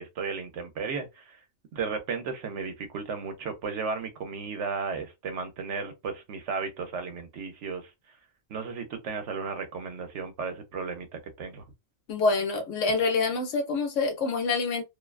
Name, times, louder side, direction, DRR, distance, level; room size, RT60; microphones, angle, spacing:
voice 1, 0.0-1.4 1.7-7.9 8.5-11.6, right 5 dB, 70° right, 1.0 m, -34 dB
voice 2, 12.1-14.8, left 4 dB, 75° left, 1.0 m, -26 dB
2.6 x 2.2 x 2.3 m
omnidirectional pair, 1.3 m